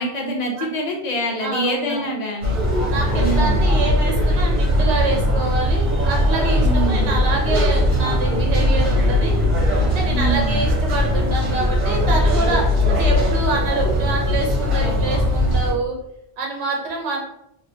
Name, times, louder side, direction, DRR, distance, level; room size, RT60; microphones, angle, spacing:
voice 1, 0.0-2.5 3.2-3.7 6.6-7.1 10.1-10.7, right 1 dB, 45° left, 1 dB, 0.6 m, -25 dB
voice 2, 1.4-2.1 2.9-9.4 9.9-15.9 16.4-17.2, right 2 dB, 65° right, -1 dB, 0.9 m, -26 dB
sound 1, 2.4-15.7, left 1 dB, 40° right, 1.1 m, -19 dB
2.9 x 2.9 x 2.7 m, 0.77 s
omnidirectional pair, 1.2 m